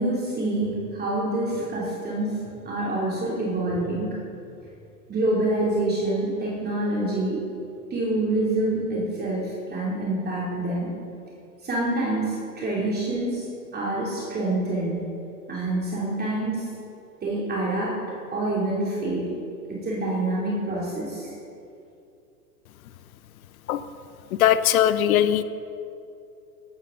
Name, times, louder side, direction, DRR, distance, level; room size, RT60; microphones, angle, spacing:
voice 1, 0.0-4.2 5.1-7.4 7.9-10.9 11.6-15.0 15.5-16.7 17.2-18.0 18.3-19.3 19.7-21.3, right 2 dB, 20° right, -5 dB, 2.9 m, -26 dB
voice 2, 24.3-25.4, left 11 dB, 60° left, 14 dB, 0.7 m, -20 dB
16.5 x 12.0 x 3.8 m, 2.6 s
hypercardioid pair, 105°, 47 cm